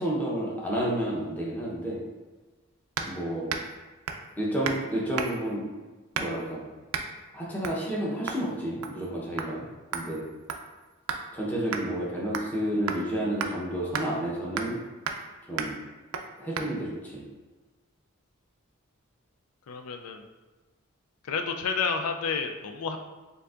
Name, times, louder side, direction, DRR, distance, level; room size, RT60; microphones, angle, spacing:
voice 1, 0.0-2.0 3.0-3.6 4.4-5.6 6.1-6.6 7.3-9.6 9.9-10.2 11.3-14.8 15.5-15.8 16.4-17.2, right 1 dB, 10° left, -5 dB, 0.8 m, -30 dB
sound 1, 3.0-3.2 3.5-3.7 4.1-4.3 4.6-4.8 5.2-5.5 6.1-6.5 6.9-7.1 7.6-7.8 8.3-8.5 8.8-9.1 9.4-9.5 9.9-11.3 11.7-11.8 12.3-12.6 12.9-13.0 13.4-13.5 13.9-14.1 14.6-14.8 15.1-15.3 15.6-15.7 16.1-16.3 16.6-16.7, right 6 dB, 85° right, 0.4 m, -33 dB
voice 2, 19.7-20.3 21.2-23.0, left 5 dB, 90° left, 5 dB, 0.4 m, -30 dB
6.6 x 2.6 x 2.4 m, 1.2 s
head